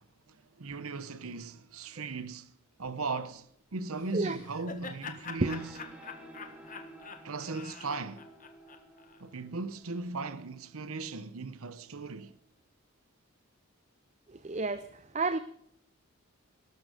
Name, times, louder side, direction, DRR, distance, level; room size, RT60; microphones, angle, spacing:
voice 1, 0.3-2.5 2.8-5.7 7.2-8.3 9.2-12.4, right 3 dB, 80° right, 0.9 m, -38 dB
Laughter, 4.0-9.2, left 5 dB, 35° left, 1.5 m, -45 dB
sound 1, 5.1-12.3, right 1 dB, 5° right, 3.3 m, -53 dB
voice 2, 14.3-15.4, right 3 dB, 30° right, 0.6 m, -31 dB
18.0 x 13.0 x 5.0 m
head